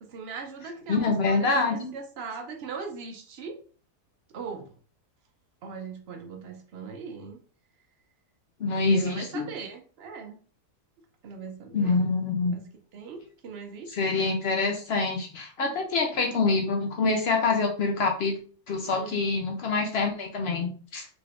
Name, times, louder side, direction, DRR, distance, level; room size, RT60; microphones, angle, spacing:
voice 1, 0.0-3.6 4.3-4.7 5.6-7.4 8.9-10.4 11.2-12.0 12.5-12.7 12.9-14.1 18.9-19.2, right 5 dB, 85° right, 4 dB, 0.5 m, -39 dB
voice 2, 0.9-1.9 8.6-9.5 11.7-12.5 13.9-18.4 18.7-21.1, left 3 dB, 75° left, 2 dB, 0.5 m, -26 dB
3.7 x 3.3 x 2.4 m, 0.40 s
omnidirectional pair, 1.8 m